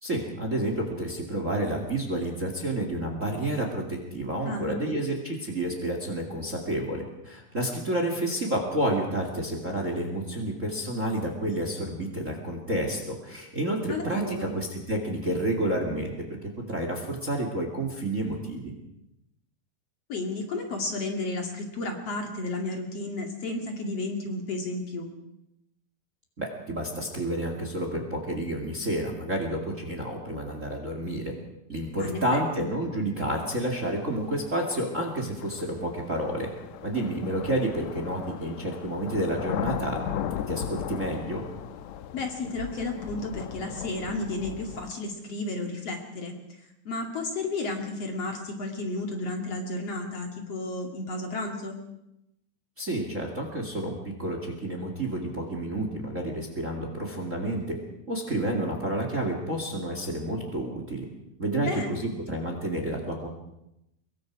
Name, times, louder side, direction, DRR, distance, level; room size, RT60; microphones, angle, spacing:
voice 1, 0.0-16.1 16.7-18.7 26.4-31.3 31.7-36.5 36.8-40.0 40.5-41.5 52.8-57.8 58.1-61.1 61.4-63.3, right 1 dB, 25° right, 3 dB, 2.3 m, -30 dB
voice 2, 4.4-4.9 13.9-14.5 20.1-25.1 32.0-32.7 42.1-46.3 46.8-51.7 61.6-62.0, left 2 dB, 45° left, 2 dB, 3.1 m, -32 dB
sound 1, 34.3-34.4 35.4-44.9, left 9 dB, 70° left, 1.8 m, -36 dB
24.5 x 22.5 x 4.8 m, 0.85 s
omnidirectional pair, 4.1 m